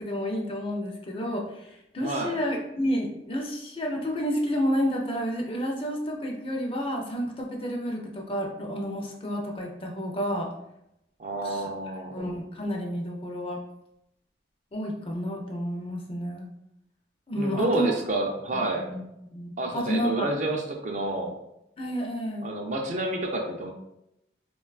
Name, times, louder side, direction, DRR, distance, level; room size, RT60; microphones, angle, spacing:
voice 1, 0.0-10.5 11.4-11.7 12.1-13.6 14.7-16.5 17.3-17.9 18.9-19.0 19.3-20.3 21.8-22.5, equal, 30° left, 0 dB, 0.4 m, -30 dB
voice 2, 2.0-2.4 11.2-12.2 17.4-18.9 19.6-21.4 22.4-23.7, right 2 dB, 40° right, 2 dB, 0.4 m, -29 dB
3.7 x 2.2 x 2.3 m, 0.84 s
head